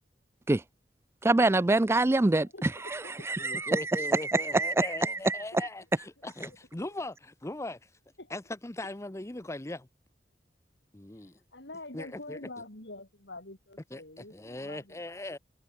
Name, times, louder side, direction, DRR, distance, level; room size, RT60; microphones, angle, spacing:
voice 1, 1.2-2.5 3.4-5.4, right 2 dB, 15° right, 0.4 m, -25 dB
voice 2, 2.4-3.7 5.1-5.2 5.5-5.7 5.9-6.0 6.5-6.6 6.9-7.0 8.2-8.3 11.1-15.0, left 2 dB, 80° left, 5.4 m, -47 dB
voice 3, 3.4-7.9 8.3-9.9 10.9-11.3 11.9-12.4 13.9-14.0 14.3-15.4, left 2 dB, 15° left, 0.9 m, -39 dB
head